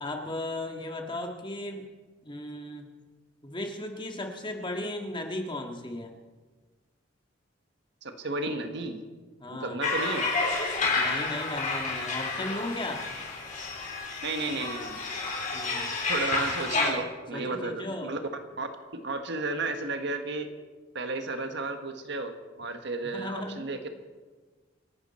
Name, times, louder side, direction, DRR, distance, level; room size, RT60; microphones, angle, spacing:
voice 1, 0.0-1.9 2.2-2.9 3.4-6.1 9.4-9.8 11.0-13.0 15.5-15.9 17.3-18.1 23.1-23.6, left 1 dB, 25° left, 3 dB, 1.8 m, -36 dB
voice 2, 8.0-9.1 9.5-10.3 14.2-15.2 16.1-20.5 20.9-23.9, right 3 dB, 65° right, 7 dB, 1.5 m, -33 dB
sound 1, 9.8-16.9, left 3 dB, 40° left, 3.9 m, -30 dB
27.0 x 11.5 x 4.4 m, 1.3 s
head